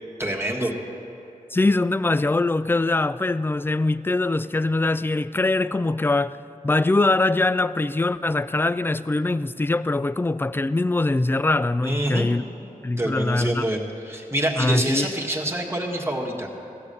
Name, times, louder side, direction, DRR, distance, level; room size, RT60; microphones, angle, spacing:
voice 1, 0.2-0.7 11.8-12.3 13.0-16.5, right 1 dB, 15° right, 1.6 m, -26 dB
voice 2, 1.5-6.4 6.6-12.4 12.8-13.7 14.6-15.1, left 2 dB, 15° left, 0.3 m, -22 dB
15.5 x 7.1 x 6.8 m
cardioid pair, 60°, 15 cm